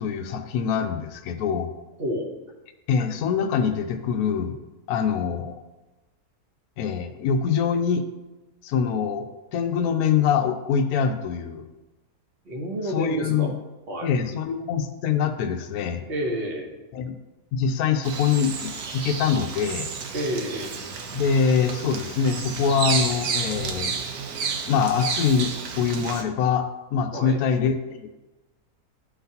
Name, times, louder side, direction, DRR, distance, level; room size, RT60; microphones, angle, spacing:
voice 1, 0.0-1.7 2.9-4.6 4.9-5.6 6.8-8.0 8.6-9.3 9.5-11.7 12.9-13.5 14.0-16.0 16.9-17.2 17.5-19.9 21.1-24.0 24.7-28.1, left 6 dB, 80° left, 6 dB, 1.0 m, -24 dB
voice 2, 2.0-2.3 12.4-13.5 13.9-14.1 16.1-16.7 20.1-20.7 27.1-27.4, equal, 45° right, 1 dB, 1.1 m, -29 dB
Bird vocalization bird call bird song, 18.0-26.2, right 5 dB, 80° right, 1.2 m, -31 dB
11.5 x 3.9 x 2.8 m, 1.1 s
omnidirectional pair, 1.6 m